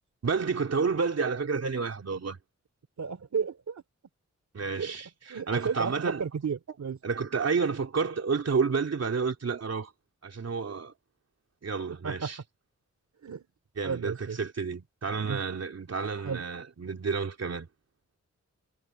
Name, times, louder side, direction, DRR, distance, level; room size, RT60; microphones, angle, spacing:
voice 1, 0.2-2.4 4.5-6.3 7.0-9.9 10.2-10.9 11.6-12.4 13.8-17.7, right 5 dB, 60° right, 3.4 m, -30 dB
voice 2, 3.0-3.8 4.7-4.9 5.3-7.0 11.9-12.3 13.2-13.4 13.8-14.4 15.1-15.4 16.2-16.4, right 6 dB, 75° right, 2.9 m, -33 dB
wide cardioid pair, 140°, 29 cm